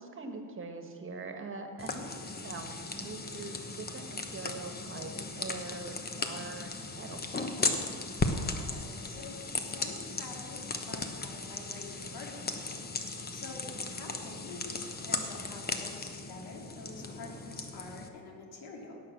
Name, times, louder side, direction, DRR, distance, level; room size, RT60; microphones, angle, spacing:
voice 1, 0.0-7.3, right 3 dB, 30° right, 5 dB, 1.6 m, -43 dB
sound 1, 1.8-18.1, left 3 dB, 25° left, 1.1 m, -37 dB
voice 2, 8.3-12.8 13.3-19.0, left 3 dB, 65° left, 0 dB, 2.7 m, -47 dB
17.0 x 6.4 x 6.3 m, 2.2 s
cardioid pair, 100°, 39 cm